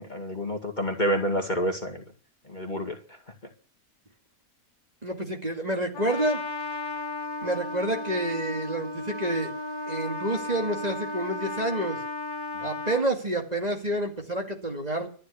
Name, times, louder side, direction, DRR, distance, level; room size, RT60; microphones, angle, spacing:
voice 1, 0.0-2.0 2.5-3.0, equal, 30° left, 3 dB, 2.2 m, -28 dB
voice 2, 5.0-6.4 7.4-9.5 9.9-12.0 12.6-15.1, right 1 dB, 25° right, 2 dB, 2.4 m, -28 dB
Trumpet, 5.9-13.1, left 2 dB, 80° left, 2.1 m, -34 dB
13.0 x 10.5 x 8.4 m, 0.42 s
omnidirectional pair, 1.6 m